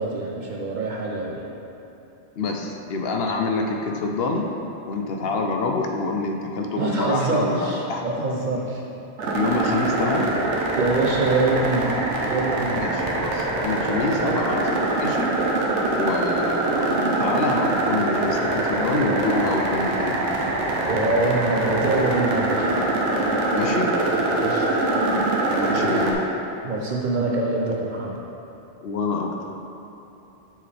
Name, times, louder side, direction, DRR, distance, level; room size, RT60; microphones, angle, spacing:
voice 1, 0.0-1.4 6.8-8.8 10.7-12.0 12.3-12.9 14.2-14.5 20.8-22.7 24.4-24.8 25.7-26.0 26.6-28.2, right 3 dB, 55° right, -1 dB, 0.6 m, -25 dB
voice 2, 2.4-4.5 4.9-8.0 9.3-10.3 12.7-15.4 16.0-20.2 23.5-23.9 25.5-26.2 28.8-29.3, left 3 dB, 65° left, 2 dB, 0.7 m, -26 dB
sound 1, 9.2-26.1, right 2 dB, 80° right, 1.1 m, -24 dB
7.3 x 4.7 x 3.4 m, 3.0 s
omnidirectional pair, 1.2 m